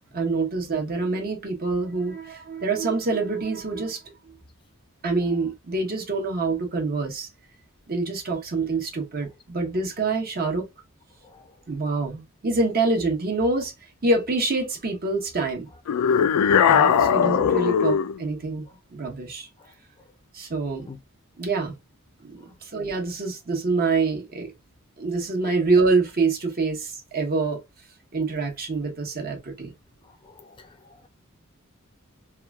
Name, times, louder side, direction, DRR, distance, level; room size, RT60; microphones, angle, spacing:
voice 1, 0.1-4.0 5.0-7.3 7.9-10.6 11.7-13.7 14.0-15.7 16.6-18.7 18.9-19.5 20.3-20.9 21.4-21.7 22.2-24.5 25.0-27.6 28.1-29.7, right 3 dB, 45° right, 0.9 m, -26 dB
voice 2, 11.2-11.5 16.7-16.8 19.6-19.7 20.9-21.0 22.4-22.5 30.0-31.1, left 4 dB, 20° left, 0.4 m, -48 dB
sound 1, 15.9-18.2, left 7 dB, 85° left, 0.3 m, -19 dB
3.0 x 2.3 x 2.2 m
head